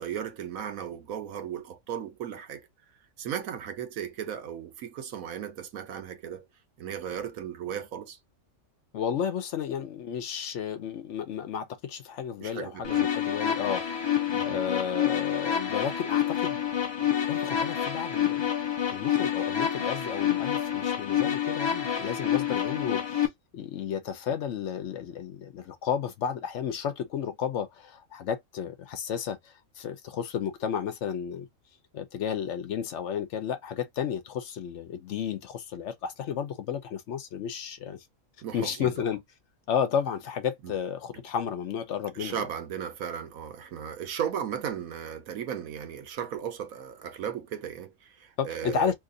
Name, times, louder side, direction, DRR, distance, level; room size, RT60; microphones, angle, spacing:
voice 1, 0.0-2.7 3.2-6.5 6.8-8.2 12.4-13.1 14.3-14.6 38.4-38.9 40.6-40.7 42.1-48.9, right 8 dB, 90° right, 1.2 m, -36 dB
voice 2, 8.9-14.1 14.4-16.6 17.0-31.5 31.9-38.0 38.5-39.2 39.7-42.5 48.4-48.9, left 8 dB, 65° left, 0.9 m, -32 dB
sound 1, 12.8-23.3, left 9 dB, 35° left, 0.4 m, -28 dB
2.9 x 2.5 x 3.7 m
omnidirectional pair, 1.4 m